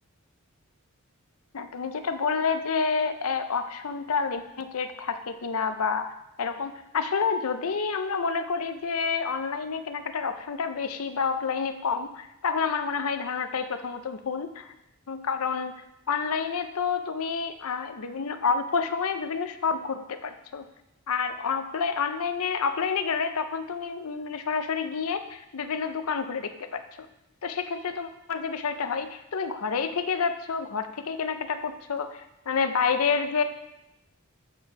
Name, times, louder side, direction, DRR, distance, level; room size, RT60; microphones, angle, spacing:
voice 1, 1.5-6.1 6.4-14.7 15.1-15.7 16.1-20.6 21.1-27.1 27.4-33.4, left 5 dB, 85° left, 9 dB, 0.6 m, -29 dB
8.0 x 4.5 x 4.7 m, 0.88 s
head